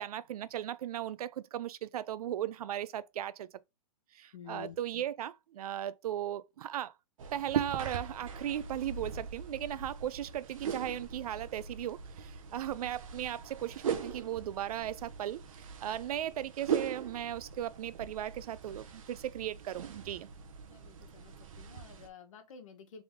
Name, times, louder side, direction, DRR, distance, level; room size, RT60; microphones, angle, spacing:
voice 1, 0.0-3.5 4.1-6.9 7.3-20.3, right 11 dB, 85° right, 0.4 m, -37 dB
voice 2, 4.3-4.8 20.7-23.0, left 7 dB, 65° left, 1.2 m, -50 dB
sound 1, 7.2-22.1, right 7 dB, 65° right, 0.9 m, -40 dB
3.5 x 3.4 x 3.5 m
hypercardioid pair, 170°, 18 cm